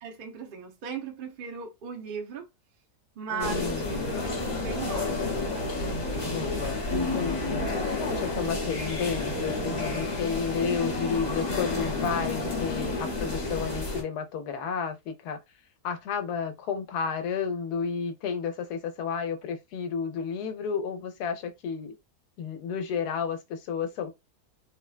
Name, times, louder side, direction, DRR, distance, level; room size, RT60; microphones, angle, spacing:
voice 1, 0.0-2.5 3.2-5.3, right 6 dB, 50° right, 0.6 m, -37 dB
voice 2, 3.3-4.2 6.2-7.7 8.0-15.4 15.8-21.9 22.4-24.1, left 6 dB, 85° left, 1.2 m, -32 dB
sound 1, 3.4-14.0, left 2 dB, 35° left, 0.7 m, -30 dB
3.5 x 2.1 x 2.4 m
omnidirectional pair, 1.7 m